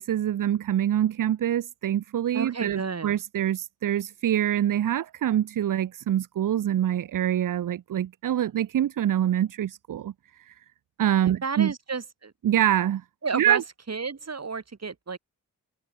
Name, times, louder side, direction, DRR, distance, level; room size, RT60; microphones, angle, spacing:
voice 1, 0.0-10.1 10.5-10.6 11.0-11.7 12.4-13.0 13.3-13.6, right 11 dB, 65° right, 0.6 m, -25 dB
voice 2, 2.3-3.2 11.2-12.3 13.2-13.6 13.9-15.2, right 5 dB, 45° right, 8.0 m, -32 dB
wide cardioid pair, 100°, 35 cm